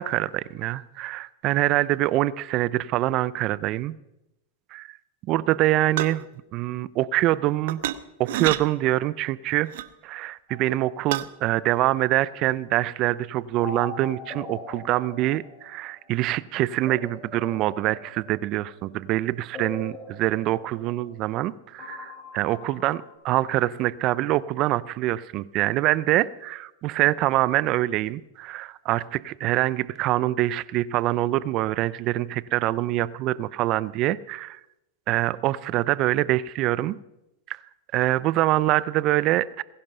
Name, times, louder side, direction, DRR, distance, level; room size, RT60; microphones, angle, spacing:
voice 1, 0.0-3.9 4.7-5.0 5.3-6.3 6.5-7.8 8.2-9.7 10.0-34.6 35.1-37.0 37.5-37.6 37.9-39.6, right 15 dB, 45° right, 19 dB, 0.5 m, -25 dB
sound 1, 6.0-6.3 7.7-8.0 8.3-8.6 9.7-9.9 11.1-11.3, right 13 dB, 65° right, 0.9 m, -27 dB
sound 2, 10.5-11.8 13.6-16.2 16.9-18.8 19.5-21.5 21.8-23.1, left 3 dB, 25° left, 5.7 m, -42 dB
20.0 x 11.0 x 5.5 m, 0.89 s
hypercardioid pair, 120°, 0 cm